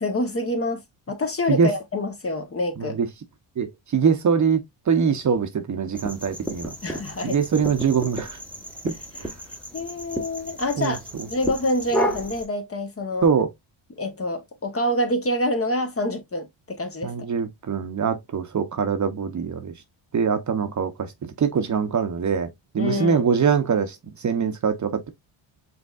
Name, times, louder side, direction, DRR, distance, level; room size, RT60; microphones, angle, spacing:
voice 1, 0.0-0.8 1.1-3.0 6.8-7.4 9.1-9.3 9.7-11.0 11.3-13.3 14.0-17.1 22.8-23.3, left 1 dB, 30° left, 1.0 m, -26 dB
voice 2, 3.6-6.7 7.2-8.4 8.8-8.9 9.2-9.3 10.8-11.0 13.2-13.5 17.0-19.7 20.1-22.5 22.7-25.1, right 6 dB, 35° right, 0.7 m, -23 dB
sound 1, 5.9-12.4, equal, 5° left, 1.0 m, -32 dB
5.2 x 3.2 x 2.3 m
cardioid pair, 85°, 49 cm